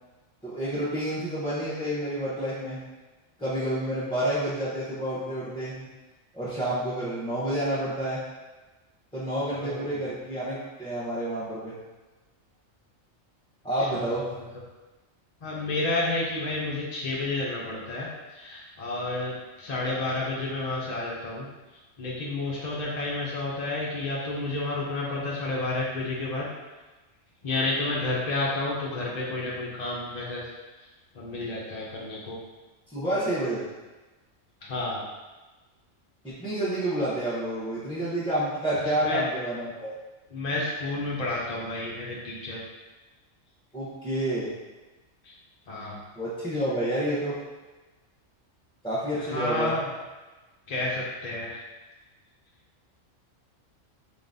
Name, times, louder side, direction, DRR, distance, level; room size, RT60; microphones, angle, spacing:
voice 1, 0.4-2.8 3.4-5.9 6.3-8.2 9.1-11.8 13.6-14.2 32.9-33.7 36.2-39.9 43.7-44.5 46.2-47.4 48.8-49.7, right 1 dB, 5° left, -11 dB, 0.7 m, -29 dB
voice 2, 9.5-10.0 13.8-14.1 15.4-21.5 22.0-26.5 27.4-30.5 30.8-30.9 31.1-32.4 34.6-35.0 38.8-39.2 40.3-42.6 45.2-45.3 45.7-46.0 49.1-49.9 50.7-51.6, left 2 dB, 45° left, -5 dB, 0.5 m, -31 dB
3.9 x 3.7 x 2.6 m, 1.2 s
omnidirectional pair, 1.3 m